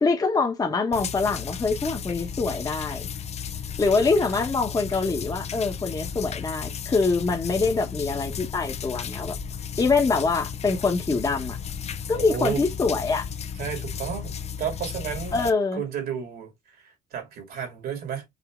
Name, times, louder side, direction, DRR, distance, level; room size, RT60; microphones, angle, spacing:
voice 1, 0.0-3.0 3.8-9.4 9.8-11.6 12.1-13.3 15.3-15.8, left 4 dB, 20° left, 1.1 m, -24 dB
sound 1, 0.9-15.5, left 7 dB, 40° left, 0.6 m, -34 dB
voice 2, 12.1-12.7 13.6-15.4 15.7-18.2, right 8 dB, 65° right, 2.4 m, -32 dB
5.1 x 2.8 x 3.6 m
cardioid pair, 110°, 17 cm